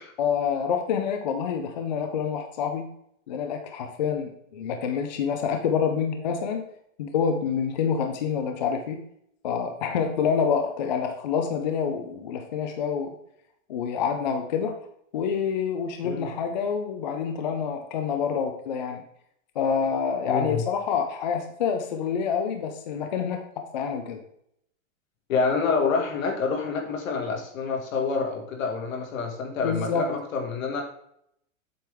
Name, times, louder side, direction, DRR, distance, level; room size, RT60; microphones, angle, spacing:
voice 1, 0.2-2.9 3.3-6.6 7.0-9.0 9.4-13.1 13.7-14.8 15.1-19.0 19.6-23.4 23.7-24.2 29.6-30.1, left 6 dB, 35° left, 5 dB, 0.4 m, -27 dB
voice 2, 20.2-20.6 25.3-30.8, left 4 dB, 75° left, 1 dB, 2.0 m, -27 dB
7.6 x 5.3 x 3.4 m, 0.72 s
supercardioid pair, 175°, 40 cm